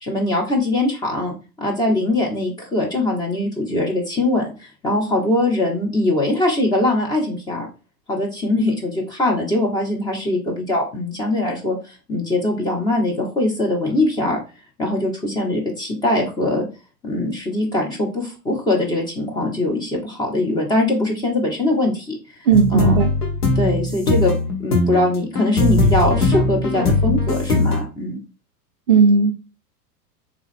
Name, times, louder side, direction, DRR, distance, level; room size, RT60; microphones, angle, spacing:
voice 1, 0.0-7.7 8.1-14.4 14.8-16.7 17.0-22.1 22.7-23.0 23.6-24.3 24.6-28.2, left 1 dB, 10° left, -2 dB, 0.6 m, -22 dB
sound 1, 22.5-27.8, left 2 dB, 70° left, 1.2 m, -20 dB
voice 2, 22.5-23.1 28.9-29.3, right 5 dB, 35° right, 3 dB, 0.4 m, -15 dB
3.5 x 2.9 x 3.4 m, 0.33 s
figure-of-eight pair, 95°, 48 cm